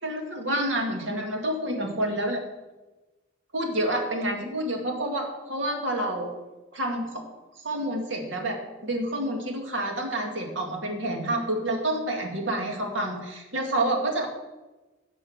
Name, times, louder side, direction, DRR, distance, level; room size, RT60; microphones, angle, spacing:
voice 1, 0.0-2.4 3.5-6.3 6.7-7.2 7.6-14.3, right 1 dB, 75° right, 2 dB, 2.1 m, -28 dB
11.0 x 5.4 x 7.3 m, 1.1 s
head